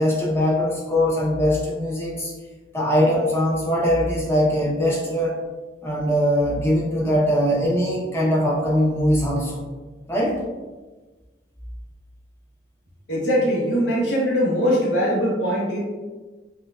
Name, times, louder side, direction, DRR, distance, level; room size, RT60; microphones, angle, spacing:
voice 1, 0.0-2.3 2.7-5.3 5.8-9.6 10.1-10.4, equal, 15° left, -4 dB, 0.6 m, -21 dB
voice 2, 13.1-15.8, equal, 75° left, -5 dB, 0.9 m, -21 dB
4.4 x 2.2 x 2.3 m, 1.3 s
head